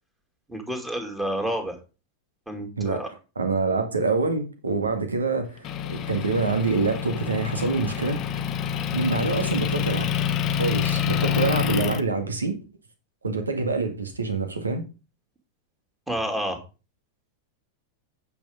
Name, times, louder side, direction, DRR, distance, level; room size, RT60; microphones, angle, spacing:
voice 1, 0.5-1.8 2.5-3.1 16.1-16.6, equal, 10° right, 2.7 m, -29 dB
voice 2, 2.8-3.1 3.4-8.2 8.9-10.1 10.5-12.6 13.2-14.8, right 3 dB, 75° right, 2.0 m, -26 dB
Motor vehicle (road) / Engine, 5.6-12.0, left 8 dB, 35° left, 0.9 m, -27 dB
9.0 x 5.9 x 5.1 m
figure-of-eight pair, 90°, 0 cm